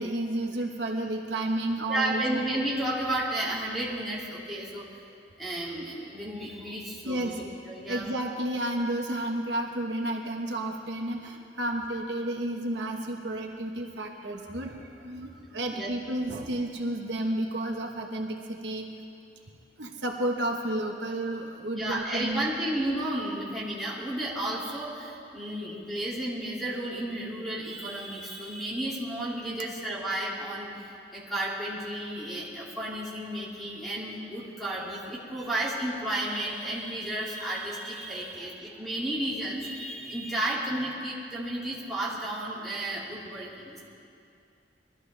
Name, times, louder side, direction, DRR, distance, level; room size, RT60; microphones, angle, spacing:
voice 1, 0.0-2.4 7.0-7.4 7.9-18.9 19.8-22.5, right 1 dB, 75° right, 1 dB, 1.1 m, -31 dB
voice 2, 1.9-5.0 5.4-8.1 15.2-15.3 15.7-15.9 21.7-43.8, right 1 dB, ahead, -7 dB, 2.5 m, -33 dB
22.0 x 13.0 x 3.3 m, 2.5 s
head